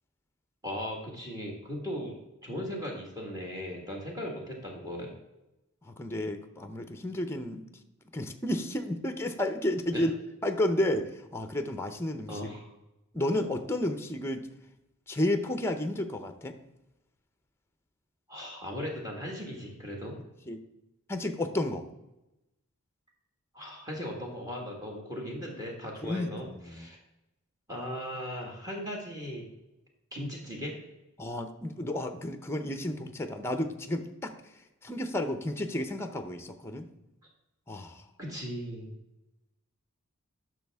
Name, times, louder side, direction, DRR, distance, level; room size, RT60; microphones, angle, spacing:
voice 1, 0.6-2.1 2.4-5.1 9.9-10.1 12.3-12.7 18.3-20.1 23.5-27.0 27.7-29.5 30.1-30.7 38.2-38.9, equal, 20° right, -1 dB, 1.7 m, -38 dB
voice 2, 5.9-7.6 8.1-10.1 10.4-12.5 13.1-14.5 15.1-16.5 20.5-20.6 21.1-21.8 26.0-26.9 31.2-34.3 34.8-36.9 37.7-38.0, left 1 dB, 10° left, 7 dB, 0.6 m, -32 dB
11.0 x 6.3 x 3.5 m, 0.95 s
head